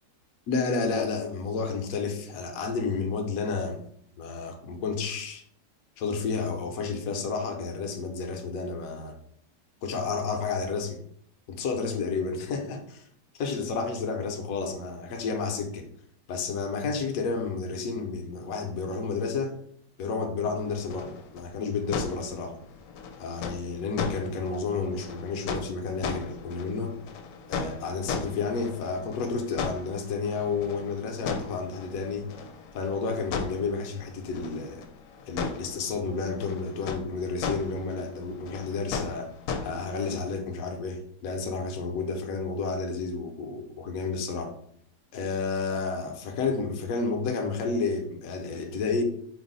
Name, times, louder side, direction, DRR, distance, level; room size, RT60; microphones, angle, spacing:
voice 1, 0.5-3.8 4.2-5.4 6.0-9.2 9.8-11.0 11.5-13.0 13.4-15.8 16.3-19.5 20.0-22.6 23.2-26.9 27.5-32.3 32.7-34.9 35.3-39.3 39.6-44.5 45.1-49.0, left 4 dB, 65° left, 5 dB, 0.9 m, -31 dB
sound 1, 20.5-40.3, left 5 dB, 80° left, 1.2 m, -37 dB
4.6 x 2.0 x 3.9 m, 0.66 s
omnidirectional pair, 1.9 m